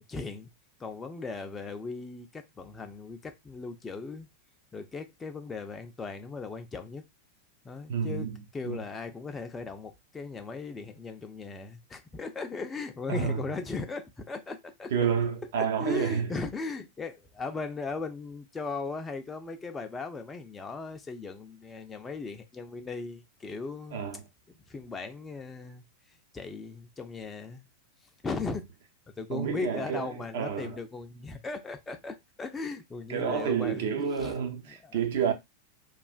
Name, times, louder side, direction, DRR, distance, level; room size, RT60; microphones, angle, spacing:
voice 1, 0.1-0.5 0.8-4.3 4.7-7.1 7.6-14.9 15.6-24.0 24.7-25.8 26.3-27.6 28.2-28.6 29.2-33.9 34.2-34.4 34.7-35.0, left 4 dB, 15° left, 0.4 m, -37 dB
voice 2, 7.9-8.4 8.6-8.8 13.1-13.4 14.9-16.3 23.9-24.2 29.3-30.8 33.1-35.3, right 7 dB, 55° right, 0.7 m, -29 dB
3.1 x 2.4 x 2.3 m
figure-of-eight pair, 90°, 0 cm